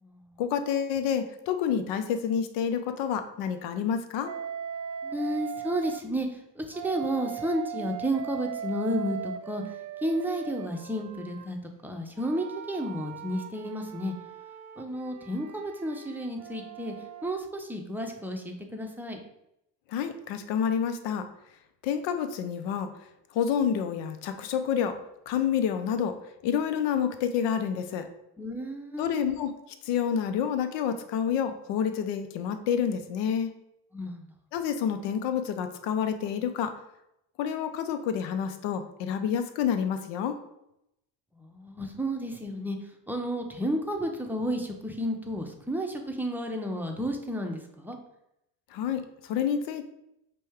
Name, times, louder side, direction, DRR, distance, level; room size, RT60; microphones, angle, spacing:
voice 1, 0.4-4.3 19.9-21.3 21.8-22.9 23.3-25.0 25.3-26.2 26.4-28.1 29.0-29.5 29.8-33.5 34.5-36.7 37.4-40.4 48.7-49.8, left 8 dB, 70° left, 9 dB, 0.6 m, -28 dB
Wind instrument woodwind instrument, 4.3-6.0 6.7-11.5 12.2-17.4, right 9 dB, 40° right, 0.5 m, -39 dB
voice 2, 5.0-9.7 10.0-11.6 11.8-14.1 14.8-16.9 17.2-19.2 28.4-29.1 33.9-34.3 41.4-42.8 43.1-48.0, equal, 5° right, 2 dB, 0.7 m, -32 dB
5.2 x 2.3 x 3.5 m, 0.82 s
supercardioid pair, 70°, 44 cm